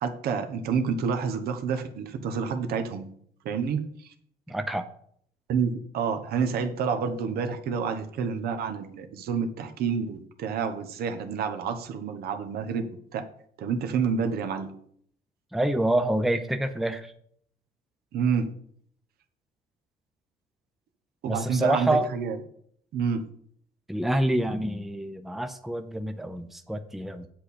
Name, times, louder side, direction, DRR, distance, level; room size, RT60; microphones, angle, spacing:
voice 1, 0.0-3.1 3.4-4.1 5.5-13.2 13.6-14.7 18.1-18.5 21.2-22.4 22.9-23.3, right 6 dB, 65° right, 6 dB, 1.1 m, -28 dB
voice 2, 4.5-4.9 15.5-17.1 21.3-22.1 23.9-27.3, right 1 dB, ahead, 8 dB, 0.7 m, -27 dB
8.4 x 7.7 x 4.3 m, 0.65 s
cardioid pair, 110°, 17 cm